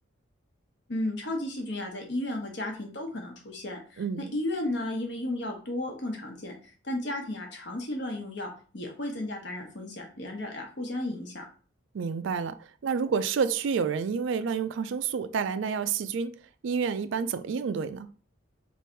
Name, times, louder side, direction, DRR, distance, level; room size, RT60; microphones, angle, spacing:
voice 1, 0.9-11.4, left 1 dB, 60° left, 1.0 m, -34 dB
voice 2, 4.0-4.3 11.9-18.1, right 6 dB, 70° right, 0.3 m, -29 dB
3.2 x 2.5 x 4.4 m
head